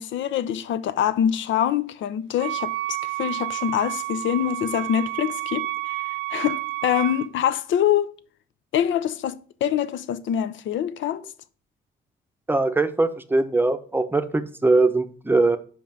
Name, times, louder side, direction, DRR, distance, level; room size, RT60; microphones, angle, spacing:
voice 1, 0.0-5.7 6.3-8.1 8.7-9.4 9.6-11.2, left 10 dB, 70° left, 0.6 m, -24 dB
Wind instrument woodwind instrument, 2.4-7.3, right 17 dB, 75° right, 0.4 m, -30 dB
voice 2, 12.5-15.6, right 3 dB, 10° right, 0.7 m, -21 dB
5.3 x 5.0 x 5.9 m
cardioid pair, 90°, 20 cm